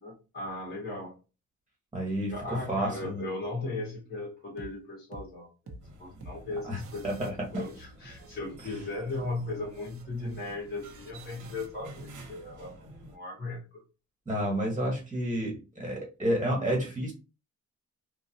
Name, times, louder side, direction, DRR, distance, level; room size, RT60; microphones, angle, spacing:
voice 1, 0.0-1.1 2.2-13.8, left 2 dB, 30° left, -5 dB, 1.8 m, -37 dB
voice 2, 1.9-3.2 6.6-6.8 7.0-7.5 8.7-8.8 14.2-17.1, equal, 15° right, -1 dB, 1.5 m, -30 dB
sound 1, 4.6-4.8 5.1-5.3 5.7-5.9 6.2-6.4 6.8-8.4 8.6-8.9 9.7-12.2, right 2 dB, 45° right, 0.9 m, -50 dB
sound 2, 5.8-13.2, right 1 dB, 85° right, 1.2 m, -50 dB
3.7 x 2.4 x 2.8 m, 0.31 s
cardioid pair, 90°, 30 cm